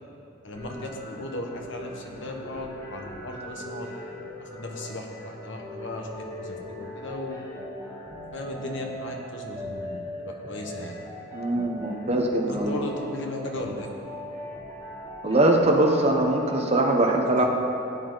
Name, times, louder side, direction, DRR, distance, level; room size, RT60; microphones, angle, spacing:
voice 1, 0.4-3.9 4.4-7.4 8.3-10.9 12.5-13.9 17.4-17.5, left 1 dB, 65° left, 2 dB, 1.5 m, -36 dB
sound 1, 0.5-16.5, left 1 dB, 20° left, 3.3 m, -40 dB
voice 2, 11.3-12.8 15.2-17.5, right 1 dB, 30° right, 1 dB, 1.1 m, -22 dB
16.5 x 10.0 x 4.1 m, 2.8 s
head